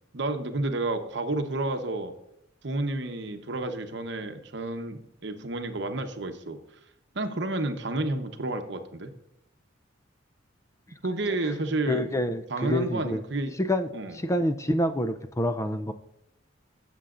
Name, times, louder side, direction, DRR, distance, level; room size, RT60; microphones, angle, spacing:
voice 1, 0.1-2.1 2.6-6.6 7.1-9.1 11.0-12.1 12.5-13.6 13.9-14.1, right 2 dB, 60° right, 7 dB, 1.0 m, -30 dB
voice 2, 11.9-13.2 13.6-15.9, left 1 dB, 15° left, 9 dB, 0.4 m, -27 dB
16.5 x 6.9 x 2.5 m, 0.83 s
head